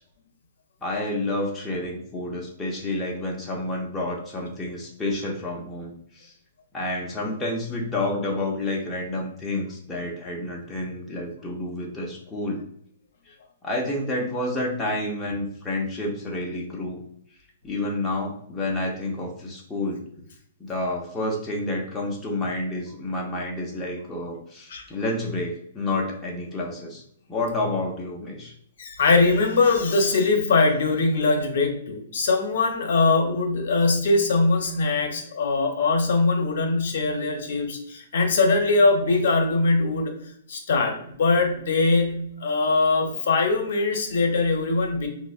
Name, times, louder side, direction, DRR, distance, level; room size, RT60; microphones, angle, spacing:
voice 1, 0.8-6.3 6.7-12.6 13.3-13.4 13.6-17.0 17.6-20.0 20.6-27.0 27.3-28.5, left 2 dB, 10° left, -3 dB, 0.4 m, -29 dB
voice 2, 28.8-40.1 40.5-45.1, left 3 dB, 60° left, 4 dB, 0.6 m, -22 dB
3.6 x 2.0 x 2.3 m, 0.68 s
hypercardioid pair, 165°, 0 cm